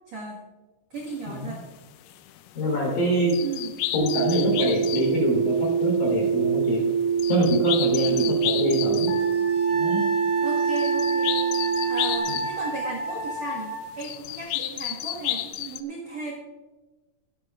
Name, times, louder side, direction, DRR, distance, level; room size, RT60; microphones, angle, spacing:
voice 1, 0.1-0.4 0.9-1.6 3.4-3.7 8.0-8.4 10.4-11.4 11.9-16.4, right 3 dB, 65° right, -2 dB, 1.7 m, -36 dB
sound 1, 1.0-1.1 1.5-1.6 2.0-5.2 5.6-12.9 13.3-13.6 13.9-15.8, left 14 dB, 85° left, 3.3 m, -32 dB
voice 2, 1.3-1.6 2.5-3.3 3.9-6.8 7.3-9.1 9.7-10.0 12.3-12.4, equal, 40° left, -1 dB, 4.9 m, -25 dB
sound 2, 3.9-12.2, right 7 dB, 80° right, 5.1 m, -24 dB
Wind instrument woodwind instrument, 9.1-13.9, right 1 dB, 60° left, 3.9 m, -31 dB
24.0 x 10.0 x 2.5 m, 1.2 s
omnidirectional pair, 5.8 m